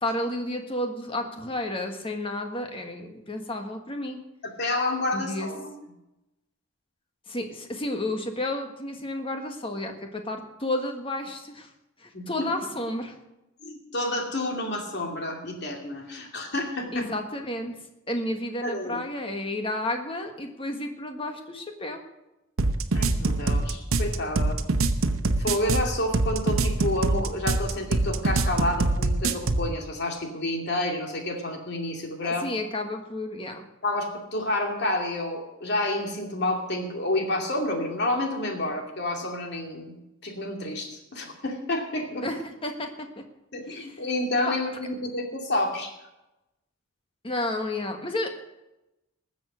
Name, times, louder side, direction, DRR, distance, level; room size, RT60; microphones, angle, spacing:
voice 1, 0.0-4.2 5.1-5.5 7.3-11.7 12.0-13.1 16.9-17.7 18.1-22.0 32.2-33.6 42.2-43.2 43.7-43.9 44.5-44.6 47.2-48.3, left 1 dB, 25° left, 4 dB, 1.5 m, -31 dB
voice 2, 4.6-5.7 12.1-12.3 13.6-17.1 18.6-19.0 22.9-24.6 25.4-32.5 33.8-42.2 43.5-45.9, left 1 dB, 55° left, 2 dB, 2.6 m, -29 dB
sound 1, 22.6-29.7, right 2 dB, 90° right, 1.0 m, -24 dB
19.5 x 7.3 x 6.2 m, 0.95 s
head